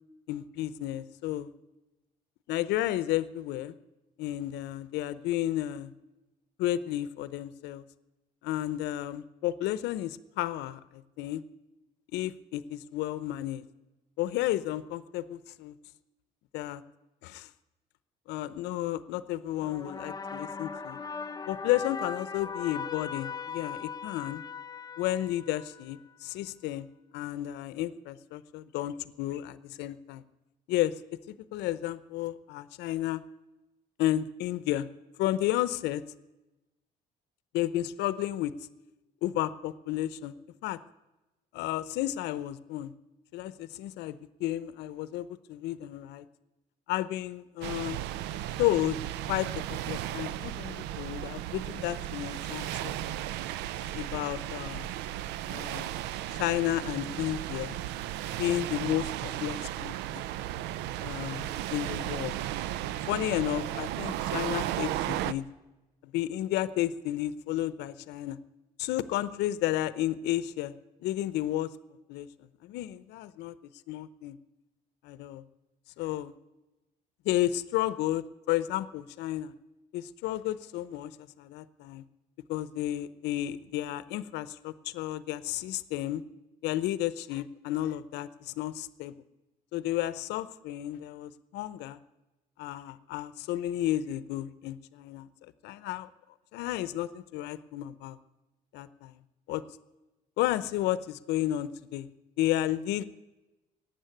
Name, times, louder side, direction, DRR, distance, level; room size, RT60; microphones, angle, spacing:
voice 1, 0.3-1.5 2.5-3.8 4.2-5.9 6.6-7.8 8.4-11.4 12.1-13.6 14.2-15.7 16.5-16.8 17.2-17.5 18.3-21.0 21.5-24.4 25.0-26.9 27.1-30.2 30.7-31.0 31.3-33.2 34.0-34.9 35.2-36.0 37.5-38.5 39.2-40.3 40.6-40.8 41.5-42.9 43.3-46.2 46.9-48.0 48.6-49.0 49.3-53.4 53.8-54.9 55.5-55.9 56.4-57.8 58.4-60.2 61.0-62.4 63.1-65.4 66.0-68.4 68.8-70.7 71.0-71.7 72.1-72.3 72.6-73.5 73.9-74.4 75.0-75.4 76.0-76.3 77.2-79.5 79.9-81.1 81.4-82.0 82.5-86.2 86.6-89.1 89.7-92.0 92.6-95.3 95.6-96.1 96.5-98.2 98.7-99.2 99.5-99.6 100.4-102.1 102.4-103.0, left 14 dB, 85° left, 16 dB, 0.7 m, -32 dB
sound 1, 19.6-26.0, left 5 dB, 20° left, 0.6 m, -39 dB
sound 2, 47.6-65.3, right 13 dB, 90° right, 0.5 m, -35 dB
15.5 x 9.1 x 9.1 m, 1.1 s
cardioid pair, 110°, 17 cm